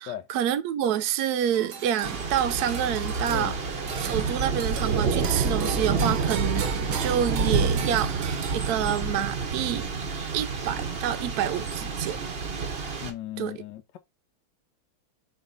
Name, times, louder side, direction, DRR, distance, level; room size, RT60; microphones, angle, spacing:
voice 1, 0.0-3.6 4.0-9.9 10.3-12.2 13.4-13.5, right 10 dB, 85° right, 0.8 m, -28 dB
sound 1, 1.4-9.1, right 7 dB, 60° right, 1.3 m, -38 dB
Thunder / Rain, 2.0-13.1, right 4 dB, 40° right, 0.9 m, -28 dB
voice 2, 13.0-14.0, left 13 dB, 70° left, 1.1 m, -36 dB
4.8 x 3.7 x 5.3 m
omnidirectional pair, 2.2 m